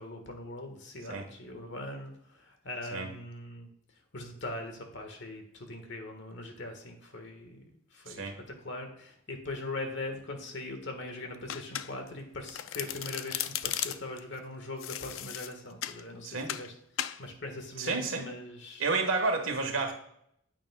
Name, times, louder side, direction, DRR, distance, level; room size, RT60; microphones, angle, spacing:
voice 1, 0.0-3.7 4.1-16.7 17.2-18.8, left 2 dB, 60° left, 5 dB, 1.6 m, -41 dB
Domestic sounds home sounds, 11.5-12.2 12.5-14.2 14.8-16.0 16.5-16.7 17.0-17.2, left 11 dB, 80° left, 0.4 m, -36 dB
voice 2, 17.8-18.3 18.8-19.9, right 3 dB, 85° right, 4 dB, 1.4 m, -30 dB
9.4 x 8.7 x 2.3 m, 0.72 s
head